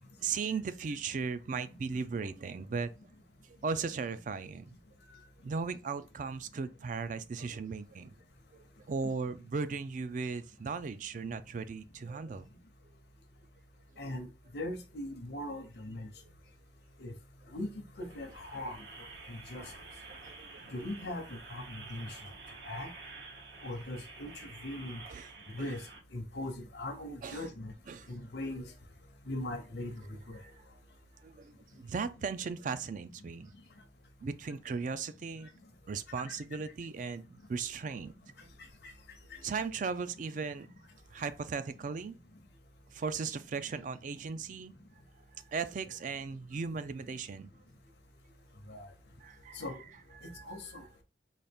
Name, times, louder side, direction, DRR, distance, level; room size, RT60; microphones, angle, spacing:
voice 1, 0.2-2.9 3.6-4.7 5.4-8.1 8.9-12.5 20.3-20.6 25.1-25.3 27.2-27.4 27.9-28.1 30.4-30.5 31.2-33.5 34.2-35.5 35.9-38.1 39.4-40.7 41.1-42.2 42.9-44.7 45.5-47.5 49.2-49.6 50.2-50.6, right 5 dB, 45° right, 0.4 m, -37 dB
voice 2, 14.0-14.3 14.5-16.1 17.0-17.1 17.5-17.7 18.0-18.8 19.3-19.6 20.7-22.1 22.6-22.9 23.6-25.0 25.5-25.8 26.1-27.7 28.1-28.6 29.3-29.9 30.3-30.4 48.7-48.9 49.5-49.8 50.4-50.8, left 1 dB, 65° left, 0.7 m, -39 dB
sound 1, 18.0-26.0, right 3 dB, 85° right, 1.2 m, -50 dB
4.0 x 2.4 x 3.4 m
head